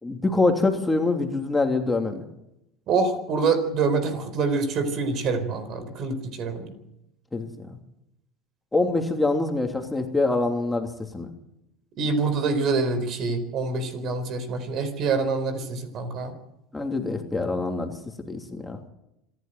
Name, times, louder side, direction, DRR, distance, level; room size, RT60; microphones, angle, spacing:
voice 1, 0.0-2.2 7.3-7.7 8.7-10.9 11.1-11.3 16.7-17.9 18.3-18.8, left 3 dB, 10° left, 3 dB, 3.0 m, -25 dB
voice 2, 2.9-6.7 12.0-16.3, right 4 dB, 50° right, 11 dB, 4.4 m, -26 dB
26.0 x 11.5 x 9.3 m, 0.85 s
hypercardioid pair, 85°, 0 cm